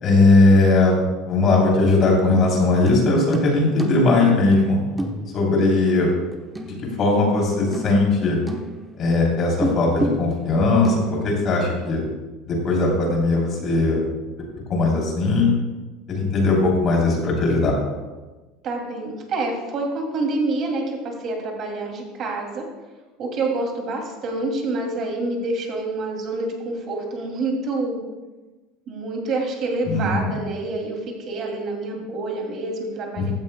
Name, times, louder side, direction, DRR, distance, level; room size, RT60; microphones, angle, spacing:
voice 1, 0.0-1.0 1.3-4.8 5.3-6.1 6.6-8.4 9.0-10.9 11.2-12.0 12.5-14.0 14.7-15.5 16.1-17.7 29.8-30.3 33.2-33.3, left 3 dB, 35° left, -2 dB, 3.3 m, -19 dB
sound 1, 2.7-7.4 7.7-9.0 9.6-11.7 12.0-12.1, right 1 dB, 10° right, 0.9 m, -30 dB
voice 2, 18.6-22.6 23.2-28.0 28.9-33.3, right 2 dB, 40° right, 1 dB, 2.5 m, -27 dB
15.5 x 13.0 x 2.2 m, 1.2 s
cardioid pair, 155°, 0 cm